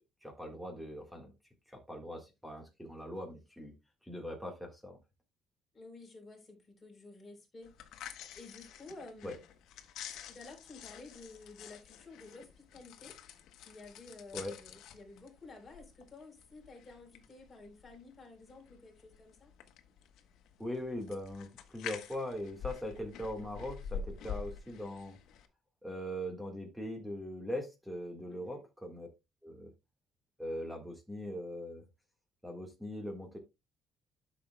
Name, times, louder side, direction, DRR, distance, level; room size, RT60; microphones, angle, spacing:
voice 1, 0.2-1.3 1.7-3.7 4.0-5.0 9.2-9.4 14.3-14.5 20.6-25.2 25.8-29.1 29.4-29.7 30.4-31.9 32.4-33.4, equal, ahead, 3 dB, 1.6 m, -41 dB
voice 2, 5.7-9.4 10.2-13.1 13.6-19.5 28.3-28.6, left 3 dB, 20° left, 0 dB, 3.5 m, -52 dB
sound 1, 7.6-25.5, left 7 dB, 75° left, 1.2 m, -48 dB
12.5 x 6.4 x 2.2 m, 0.23 s
cardioid pair, 165°, 0 cm